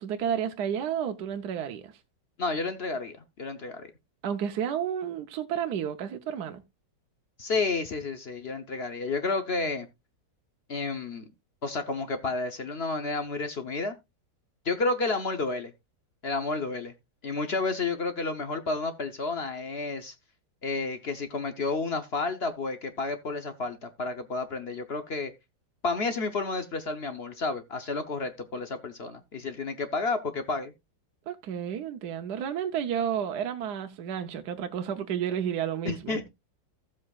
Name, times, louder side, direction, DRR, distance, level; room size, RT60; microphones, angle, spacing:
voice 1, 0.0-1.9 4.2-6.6 31.3-36.2, right 8 dB, 70° right, 1.3 m, -31 dB
voice 2, 2.4-3.9 7.4-9.9 10.7-11.2 11.6-14.0 14.6-15.7 16.2-16.9 17.2-20.1 20.6-25.3 25.8-30.7 35.8-36.3, left 3 dB, 50° left, 0.8 m, -31 dB
15.0 x 7.5 x 2.3 m
omnidirectional pair, 1.9 m